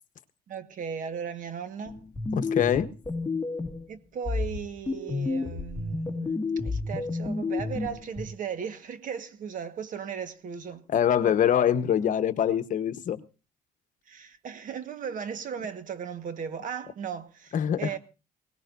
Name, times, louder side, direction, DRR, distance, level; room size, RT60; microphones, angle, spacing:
voice 1, 0.5-2.0 3.9-10.9 14.1-18.0, right 7 dB, 50° right, 1.5 m, -37 dB
sound 1, 1.8-3.9 4.2-8.2, left 3 dB, 10° left, 2.0 m, -31 dB
voice 2, 2.3-2.9 10.9-13.2 17.5-17.9, left 9 dB, 50° left, 1.1 m, -24 dB
21.0 x 18.5 x 2.6 m
cardioid pair, 110°, 17 cm